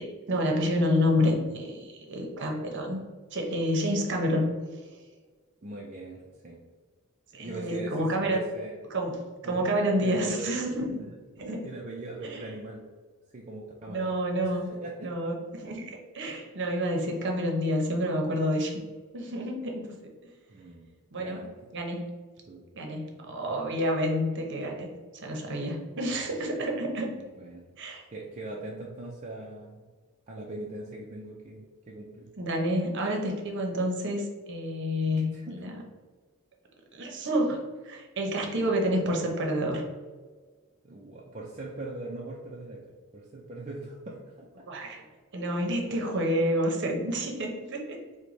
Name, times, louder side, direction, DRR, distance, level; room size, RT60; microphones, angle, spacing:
voice 1, 0.0-3.0 3.3-4.5 7.3-8.4 8.9-11.0 11.4-11.7 12.2-12.5 13.9-14.7 15.0-18.8 19.1-20.1 21.1-21.5 21.7-22.1 22.7-24.9 25.1-27.1 27.8-28.0 32.4-35.8 36.9-37.6 37.8-39.8 44.7-45.0 45.3-48.0, equal, 55° right, 1 dB, 0.8 m, -29 dB
voice 2, 5.6-6.6 7.3-8.8 9.4-9.7 10.0-10.5 11.0-11.1 11.6-12.8 13.3-14.1 14.4-15.1 20.5-20.9 21.2-21.5 22.4-22.7 27.1-27.6 28.1-29.8 30.3-32.3 35.2-35.8 37.1-37.2 40.8-42.8 43.1-44.5, right 2 dB, 30° right, -3 dB, 0.4 m, -41 dB
4.6 x 2.2 x 3.9 m, 1.4 s
head